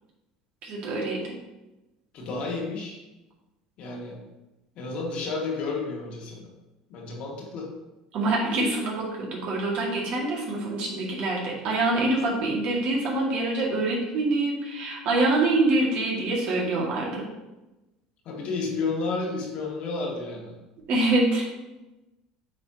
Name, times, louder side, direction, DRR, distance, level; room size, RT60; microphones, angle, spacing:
voice 1, 0.6-1.3 8.1-17.2 20.9-21.5, right 2 dB, 60° right, -3 dB, 2.0 m, -25 dB
voice 2, 2.1-3.0 3.8-4.2 4.8-6.5 6.9-7.7 18.3-20.6, left 3 dB, 55° left, -1 dB, 1.8 m, -31 dB
8.5 x 4.0 x 2.9 m, 1.0 s
hypercardioid pair, 80°, 2 cm